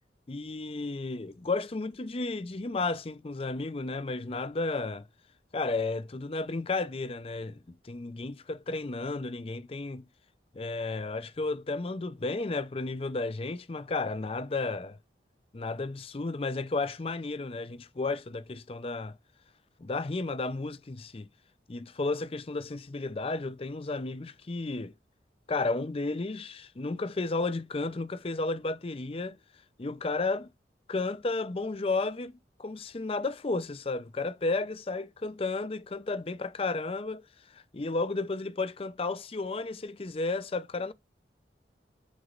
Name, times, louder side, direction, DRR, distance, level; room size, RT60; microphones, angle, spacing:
voice 1, 0.3-5.1 5.5-10.1 10.5-15.0 15.5-19.2 19.8-21.3 21.7-24.9 25.5-29.4 29.8-30.5 30.9-32.3 32.6-37.2 37.5-40.9, left 3 dB, 35° left, 0.5 m, -33 dB
8.0 x 3.1 x 3.8 m
head